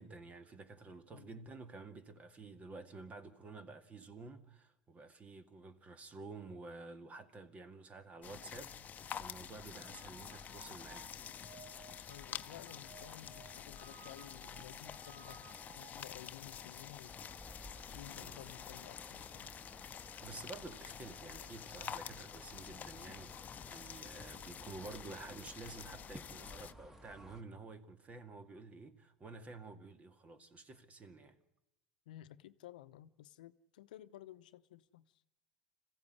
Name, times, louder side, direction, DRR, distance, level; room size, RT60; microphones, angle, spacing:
voice 1, 0.0-11.4 18.2-18.4 20.2-31.4, right 3 dB, 30° right, 2.1 m, -51 dB
voice 2, 1.1-1.4 12.1-15.5 15.8-17.4 17.9-19.5 32.1-35.1, left 13 dB, 80° left, 0.8 m, -54 dB
sound 1, 8.2-26.7, left 8 dB, 35° left, 0.9 m, -48 dB
sound 2, 9.8-16.2, right 6 dB, 50° right, 1.9 m, -59 dB
sound 3, 17.0-27.4, equal, 10° right, 2.0 m, -56 dB
26.5 x 15.5 x 9.8 m
hypercardioid pair, 80°, 5 cm